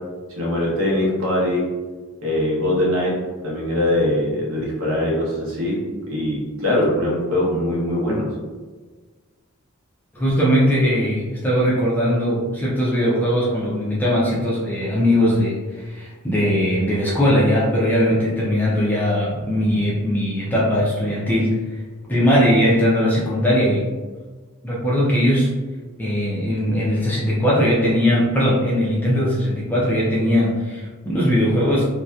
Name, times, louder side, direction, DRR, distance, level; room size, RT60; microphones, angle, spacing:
voice 1, 0.4-1.6 2.2-3.1 3.4-5.8 6.1-8.3 18.2-18.3, left 1 dB, 65° right, -4 dB, 0.8 m, -22 dB
voice 2, 10.1-21.5 22.1-23.9 24.6-25.5 26.0-31.9, equal, 10° left, -6 dB, 0.3 m, -19 dB
2.7 x 2.1 x 2.3 m, 1.4 s
head